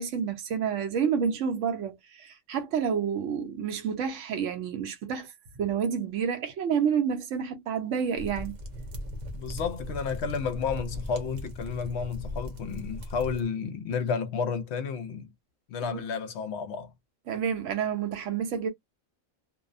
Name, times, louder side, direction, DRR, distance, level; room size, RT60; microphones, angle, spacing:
voice 1, 0.0-5.3 5.6-8.5 15.8-16.0 17.3-18.7, right 7 dB, 65° right, 1.0 m, -29 dB
sound 1, 8.2-13.4, left 1 dB, 45° right, 0.6 m, -38 dB
voice 2, 9.3-15.3 15.7-16.9, left 6 dB, 65° left, 0.8 m, -31 dB
2.7 x 2.1 x 2.5 m
omnidirectional pair, 1.4 m